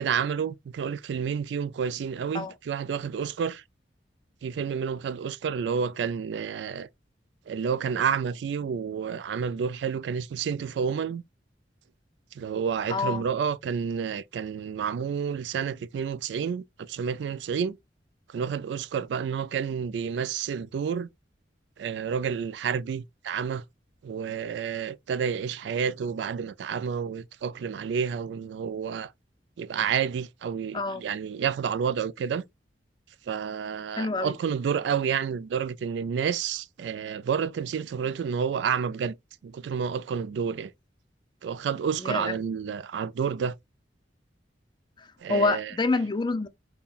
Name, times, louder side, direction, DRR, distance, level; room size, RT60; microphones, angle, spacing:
voice 1, 0.0-3.6 4.4-6.9 7.5-11.2 12.3-17.8 18.3-21.1 21.8-23.6 24.0-29.1 29.6-32.4 33.3-39.2 39.4-40.7 41.4-43.6 45.2-45.7, right 7 dB, 70° right, 0.3 m, -30 dB
voice 2, 12.9-13.2 30.7-31.0 34.0-34.3 42.0-42.3 45.3-46.5, left 3 dB, 25° left, 0.5 m, -27 dB
5.4 x 2.2 x 2.3 m
head